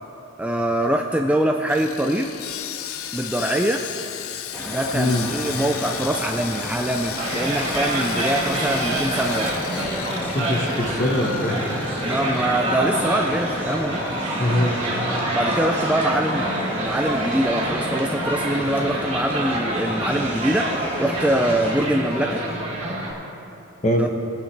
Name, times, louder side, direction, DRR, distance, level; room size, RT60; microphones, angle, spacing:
voice 1, 0.4-2.3 3.1-3.8 4.6-9.5 12.0-14.0 15.3-16.5 16.8-22.4 24.0-24.1, right 1 dB, 5° right, 3 dB, 0.4 m, -23 dB
Sawing, 1.7-15.9 16.2-16.4 16.8-17.0, left 10 dB, 85° left, 0.5 m, -35 dB
sound 1, 4.5-21.7, equal, 10° left, 1.4 m, -33 dB
voice 2, 4.9-5.3 10.3-11.6 14.4-14.8 23.8-24.0, left 1 dB, 35° left, 3 dB, 1.1 m, -22 dB
sound 2, 7.1-23.1, right 1 dB, 30° right, 2.4 m, -27 dB
20.0 x 9.0 x 3.3 m, 2.8 s
head